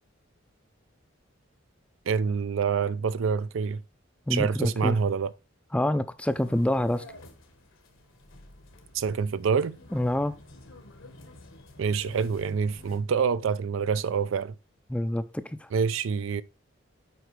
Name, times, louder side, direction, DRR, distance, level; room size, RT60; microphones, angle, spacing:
voice 1, 2.1-3.8 4.3-5.3 8.9-9.8 11.8-14.6 15.7-16.4, right 6 dB, 75° right, 0.4 m, -26 dB
voice 2, 4.3-5.0 5.7-7.0 9.9-10.3 14.9-15.7, left 1 dB, 5° left, 0.4 m, -27 dB
sound 1, 6.3-13.0, left 2 dB, 80° left, 1.3 m, -50 dB
7.9 x 4.9 x 3.2 m
head